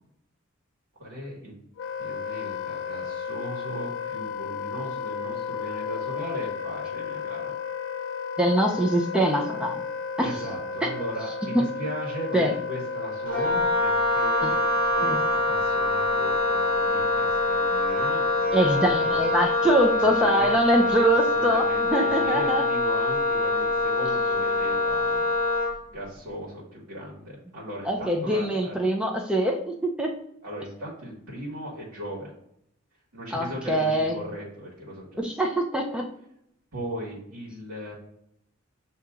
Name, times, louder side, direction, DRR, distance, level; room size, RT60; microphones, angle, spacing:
voice 1, 1.0-1.5 2.0-7.5 10.2-19.2 19.7-25.3 25.9-28.7 30.4-32.3 33.1-35.2 36.7-37.9, equal, 85° right, -4 dB, 1.5 m, -37 dB
Wind instrument woodwind instrument, 1.8-20.0, left 5 dB, 65° left, 0.4 m, -34 dB
voice 2, 8.4-9.8 10.2-10.3 10.8-10.9 11.5-11.6 12.3-12.5 14.4-14.5 15.0-15.2 18.5-22.6 27.8-30.1 33.3-34.2 35.2-36.1, right 1 dB, 5° right, 1 dB, 0.4 m, -23 dB
Wind instrument woodwind instrument 2, 13.3-25.8, left 2 dB, 40° right, 0.7 m, -24 dB
7.5 x 2.8 x 2.3 m, 0.75 s
head